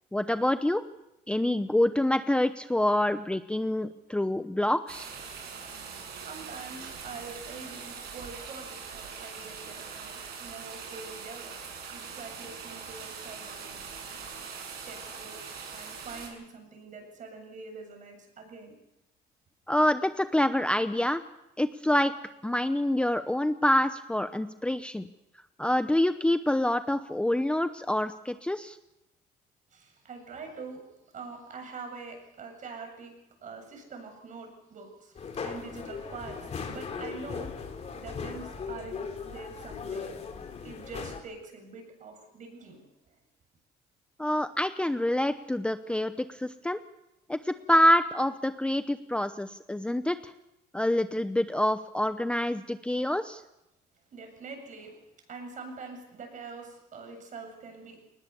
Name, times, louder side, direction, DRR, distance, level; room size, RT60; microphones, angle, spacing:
voice 1, 0.1-0.8 1.3-5.1 19.7-21.2 21.6-22.1 22.4-25.1 25.6-28.8 44.2-46.8 47.3-50.3 50.7-53.4, left 1 dB, 5° left, 10 dB, 0.8 m, -26 dB
sound 1, 4.9-16.3, right 6 dB, 70° right, 7.5 m, -42 dB
voice 2, 6.2-14.0 14.7-15.4 15.7-18.8 29.7-30.9 31.1-33.1 33.4-37.6 37.9-40.1 40.6-43.1 54.1-55.0 55.3-58.0, right 4 dB, 50° right, 5 dB, 7.6 m, -44 dB
sound 2, 35.2-41.2, left 5 dB, 40° left, 3.4 m, -38 dB
21.5 x 20.0 x 7.0 m, 0.88 s
cardioid pair, 110°, 17 cm